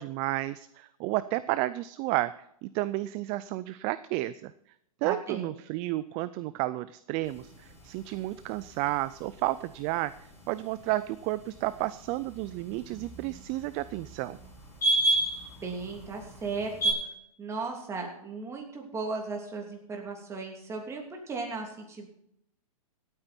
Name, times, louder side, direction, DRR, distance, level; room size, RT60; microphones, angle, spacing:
voice 1, 0.0-2.3 2.6-4.5 5.0-10.1 10.5-14.4, right 17 dB, 30° right, 15 dB, 0.4 m, -31 dB
voice 2, 5.0-5.5 15.6-16.9 17.4-22.1, right 4 dB, 15° right, 1 dB, 3.0 m, -36 dB
sound 1, 7.2-16.9, right 2 dB, 15° left, 6.2 m, -34 dB
17.0 x 9.0 x 4.4 m, 0.75 s
hypercardioid pair, 135°, 18 cm